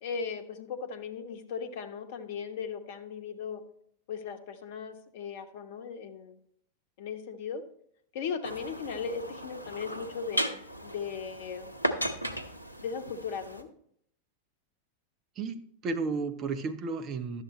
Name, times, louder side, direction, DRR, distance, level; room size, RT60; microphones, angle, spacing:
voice 1, 0.0-3.6 4.1-6.4 7.0-7.6 8.1-11.8 12.8-13.7, left 6 dB, 50° left, 7 dB, 1.0 m, -37 dB
sound 1, 8.4-13.6, right 1 dB, 85° left, 0.7 m, -36 dB
voice 2, 15.4-17.4, right 4 dB, 30° right, 8 dB, 0.9 m, -33 dB
11.5 x 7.5 x 3.1 m, 0.68 s
figure-of-eight pair, 90°, 0 cm